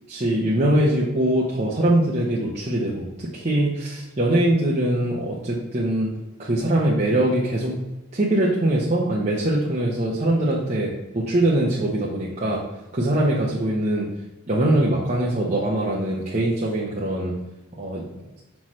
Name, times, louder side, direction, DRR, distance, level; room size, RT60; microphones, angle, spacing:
voice 1, 0.1-6.1 6.4-7.8 8.1-12.6 12.9-14.1 14.5-17.4 17.8-18.0, right 1 dB, 30° right, -5 dB, 0.9 m, -22 dB
6.0 x 5.9 x 3.2 m, 1.0 s
head